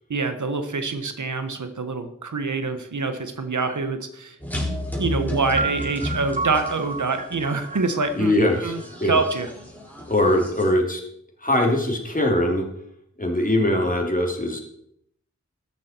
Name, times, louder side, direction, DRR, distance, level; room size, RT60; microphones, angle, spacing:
voice 1, 0.1-4.7 5.0-8.3 8.6-9.5, right 4 dB, 90° right, 8 dB, 1.3 m, -26 dB
sound 1, 4.4-10.7, left 1 dB, 5° left, 4.6 m, -33 dB
sound 2, 5.6-9.4, right 3 dB, 25° right, 0.9 m, -32 dB
voice 2, 8.2-8.7 9.0-9.2 10.1-11.0 11.4-12.6 13.2-14.6, left 1 dB, 30° left, 1 dB, 3.1 m, -21 dB
13.5 x 10.0 x 4.5 m, 0.72 s
wide cardioid pair, 45°, 29 cm